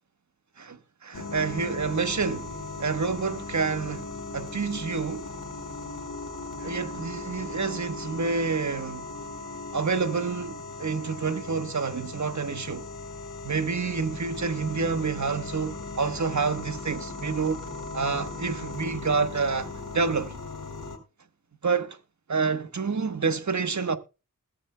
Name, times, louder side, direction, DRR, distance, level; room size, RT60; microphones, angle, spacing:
voice 1, 0.6-2.5 2.8-4.1 4.3-5.3 6.6-9.1 9.7-12.9 13.4-17.6 17.9-19.7 19.9-20.3 21.6-22.0 22.3-24.0, right 5 dB, 60° right, 1.2 m, -28 dB
sound 1, 1.1-21.0, left 3 dB, 70° left, 3.0 m, -38 dB
21.0 x 7.7 x 2.2 m
wide cardioid pair, 55°, 32 cm